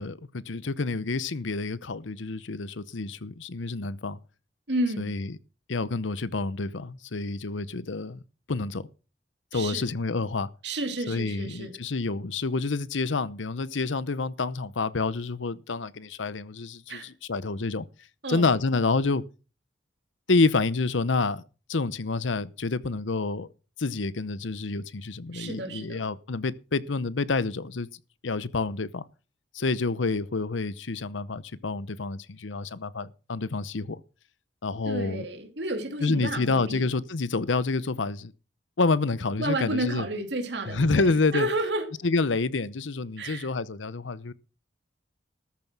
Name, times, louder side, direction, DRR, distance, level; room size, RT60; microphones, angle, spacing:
voice 1, 0.0-4.2 5.0-5.4 5.7-8.2 8.5-8.8 9.5-10.5 11.1-17.8 18.3-19.2 20.3-21.4 21.7-23.5 23.8-27.9 28.2-29.0 29.5-34.0 34.6-35.2 36.0-38.3 38.8-40.1 40.7-41.5 42.0-44.3, left 3 dB, 85° left, 0.8 m, -28 dB
voice 2, 4.7-5.2 9.5-9.9 10.6-11.8 16.9-17.1 18.2-18.5 25.3-26.0 34.8-36.9 39.4-41.9 43.2-43.5, right 1 dB, 65° right, 2.5 m, -31 dB
13.5 x 7.4 x 6.0 m
head